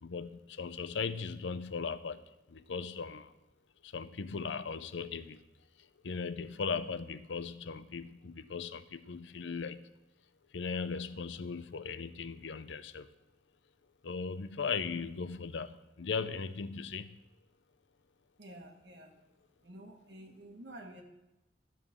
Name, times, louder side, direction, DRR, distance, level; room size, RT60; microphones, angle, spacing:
voice 1, 0.0-3.3 3.8-5.4 5.8-9.9 10.5-13.1 14.0-17.2, left 5 dB, 80° left, 13 dB, 0.6 m, -38 dB
voice 2, 18.4-19.2 19.6-21.0, right 1 dB, 70° right, 1 dB, 1.4 m, -50 dB
13.0 x 5.0 x 7.1 m, 0.95 s
head